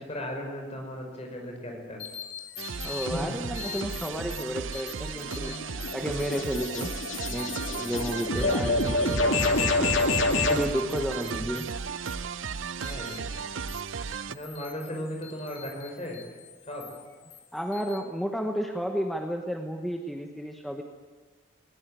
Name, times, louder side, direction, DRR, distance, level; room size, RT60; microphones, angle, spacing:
voice 1, 0.0-2.0 3.1-3.4 3.6-3.7 8.4-8.8 11.2-11.6 12.4-12.5 12.8-13.2 14.3-16.2 16.7-16.8, equal, 30° left, 2 dB, 5.5 m, -37 dB
sound 1, 2.0-18.0, left 10 dB, 65° left, 3.6 m, -46 dB
sound 2, 2.6-14.4, right 6 dB, 85° right, 0.6 m, -35 dB
voice 2, 2.8-5.5 5.9-6.9 7.3-10.0 10.5-11.7 17.5-20.8, equal, ahead, 2 dB, 1.1 m, -32 dB
sound 3, 5.2-10.7, left 2 dB, 85° left, 2.3 m, -27 dB
20.5 x 18.5 x 9.1 m, 1.4 s
head